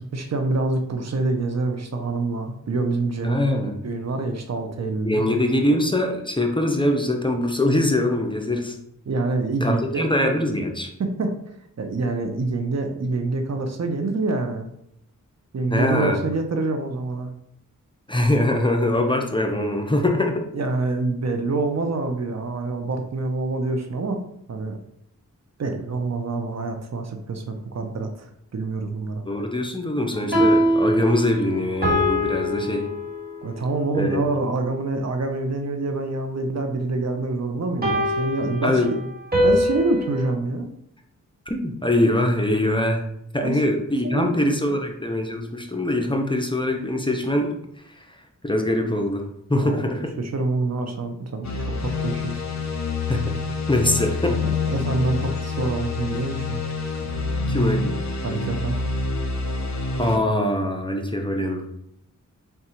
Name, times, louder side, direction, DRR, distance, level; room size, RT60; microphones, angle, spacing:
voice 1, 0.0-3.4 3.8-5.2 9.1-10.1 11.0-11.4 11.8-14.7 15.5-17.3 20.5-24.2 24.5-24.8 25.6-29.2 33.4-38.8 39.4-40.7 43.4-43.6 44.0-44.7 49.6-49.8 50.2-52.4 54.3-56.6 58.2-58.8, right 3 dB, 55° right, 5 dB, 0.6 m, -26 dB
voice 2, 3.2-3.8 5.0-8.7 9.6-10.9 15.7-16.2 18.1-20.4 29.2-32.9 33.9-34.3 38.6-38.9 41.5-43.1 43.3-47.5 48.0-48.1 48.4-50.1 53.1-53.3 53.7-54.4 57.5-58.0 60.0-61.8, left 1 dB, 15° left, 2 dB, 0.6 m, -23 dB
sound 1, 30.1-33.6 37.8-40.3, equal, 30° right, 1.6 m, -23 dB
sound 2, 51.4-60.2, left 4 dB, 55° left, 0.7 m, -27 dB
3.7 x 2.3 x 4.3 m, 0.74 s
cardioid pair, 55°, 32 cm